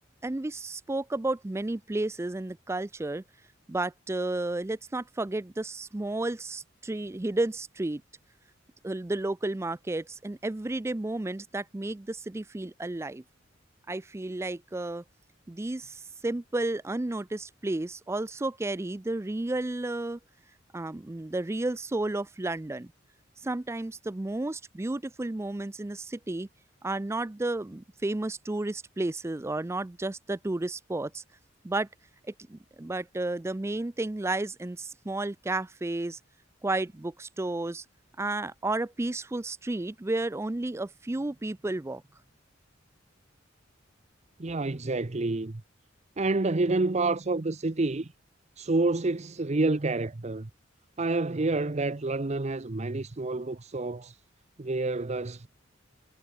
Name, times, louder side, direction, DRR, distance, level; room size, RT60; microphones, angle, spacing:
voice 1, 0.2-3.2 3.7-8.0 8.8-13.2 13.9-15.0 15.5-20.2 20.7-22.9 23.4-26.5 26.8-31.2 31.6-31.9 32.3-36.2 36.6-37.8 38.2-42.0, right 2 dB, 15° right, 0.4 m, -32 dB
voice 2, 44.4-45.6 46.2-48.1 48.6-50.5 51.0-54.2 54.6-55.5, right 2 dB, 35° right, 0.8 m, -28 dB
head